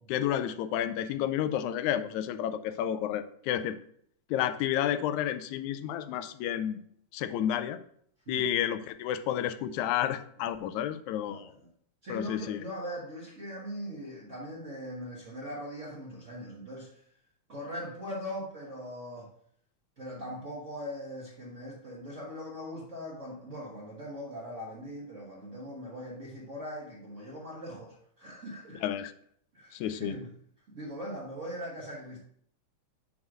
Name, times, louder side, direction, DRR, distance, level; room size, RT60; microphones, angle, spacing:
voice 1, 0.1-3.8 4.3-6.8 7.1-7.8 8.3-11.5 12.1-12.6 28.8-29.1 29.7-30.1, left 10 dB, 85° left, 11 dB, 1.9 m, -31 dB
voice 2, 11.2-11.7 12.0-17.0 17.5-19.3 20.0-28.8 29.5-30.3 30.7-32.2, equal, 35° right, -5 dB, 1.2 m, -40 dB
6.3 x 3.6 x 6.0 m, 0.63 s
omnidirectional pair, 3.3 m